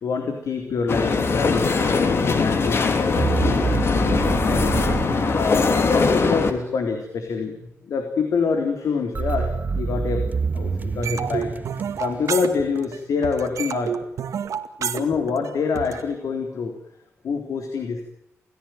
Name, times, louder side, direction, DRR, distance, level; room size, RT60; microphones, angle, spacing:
voice 1, 0.0-3.3 4.1-4.8 5.3-7.5 7.8-10.3 10.5-13.9 14.8-16.7 17.2-18.0, left 5 dB, 80° left, 5 dB, 3.8 m, -26 dB
sound 1, 0.9-6.5, left 4 dB, 50° left, 3.1 m, -21 dB
sound 2, 3.2-6.1 9.1-12.6, right 4 dB, 35° right, 0.9 m, -27 dB
sound 3, 11.0-13.0 13.2-16.0, right 7 dB, 85° right, 2.1 m, -29 dB
29.0 x 16.5 x 9.2 m, 0.78 s
wide cardioid pair, 135°, 5 cm